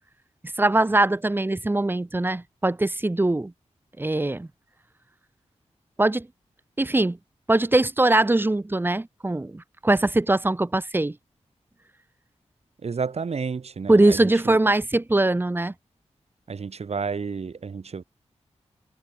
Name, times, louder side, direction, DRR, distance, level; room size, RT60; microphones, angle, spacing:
voice 1, 0.6-3.5 4.0-4.5 6.0-6.3 6.8-7.2 7.5-11.1 13.9-15.7, right 2 dB, 15° right, 1.2 m, -21 dB
voice 2, 12.8-14.6 16.5-18.0, right 5 dB, 60° right, 3.1 m, -31 dB
wide cardioid pair, 130°, 12 cm